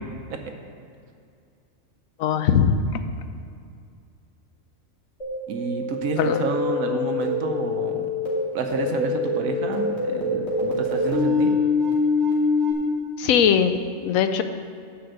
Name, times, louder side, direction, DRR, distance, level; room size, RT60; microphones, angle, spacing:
voice 1, 2.2-3.0 6.2-6.4 13.2-13.8 14.0-14.4, left 7 dB, 85° left, 9 dB, 1.1 m, -20 dB
sound 1, 5.2-12.7, left 3 dB, 55° left, 2.8 m, -25 dB
voice 2, 5.5-8.1 8.5-11.6, right 4 dB, 80° right, 4 dB, 1.3 m, -29 dB
9.9 x 5.9 x 7.9 m, 2.4 s
omnidirectional pair, 1.4 m